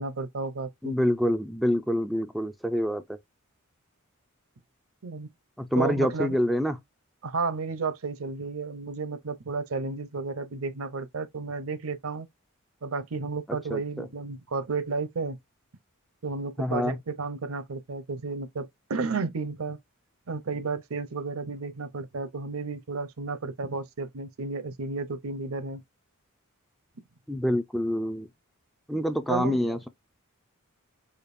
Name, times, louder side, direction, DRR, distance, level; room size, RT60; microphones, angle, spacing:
voice 1, 0.0-0.9 5.0-5.3 5.8-6.4 7.2-12.3 12.8-15.4 16.2-19.8 20.3-25.8 29.3-29.6, right 4 dB, 65° right, 0.7 m, -32 dB
voice 2, 0.8-3.2 5.6-6.8 13.7-14.1 16.6-16.9 27.3-28.3 28.9-29.9, left 1 dB, ahead, 0.3 m, -26 dB
5.1 x 2.2 x 2.5 m
head